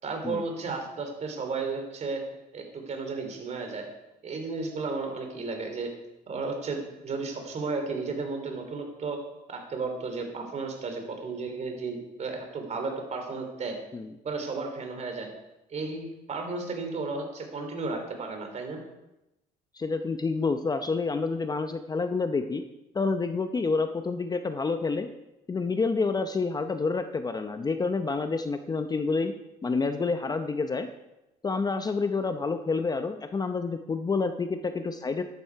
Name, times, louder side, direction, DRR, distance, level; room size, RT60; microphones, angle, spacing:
voice 1, 0.0-2.2 2.5-3.9 4.2-5.9 6.3-9.2 9.5-13.8 14.2-15.3 15.7-18.8, right 4 dB, 40° right, 4 dB, 3.2 m, -33 dB
voice 2, 19.7-22.6 22.9-25.1 25.5-29.3 29.6-30.9 31.4-35.2, left 4 dB, 25° left, 8 dB, 0.7 m, -28 dB
13.5 x 11.0 x 4.6 m, 0.94 s
cardioid pair, 110°, 17 cm